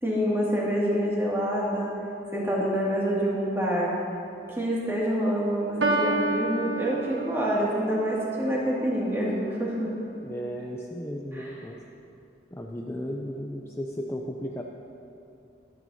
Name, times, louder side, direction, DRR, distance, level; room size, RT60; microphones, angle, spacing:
voice 1, 0.0-1.9 2.3-3.9 4.6-9.9 11.3-11.5, equal, 15° right, -6 dB, 2.3 m, -26 dB
Piano, 5.8-7.8, right 2 dB, 85° right, 1.2 m, -28 dB
voice 2, 10.2-11.8 12.5-14.6, equal, 15° left, 0 dB, 0.5 m, -35 dB
22.5 x 9.0 x 2.8 m, 2.8 s
head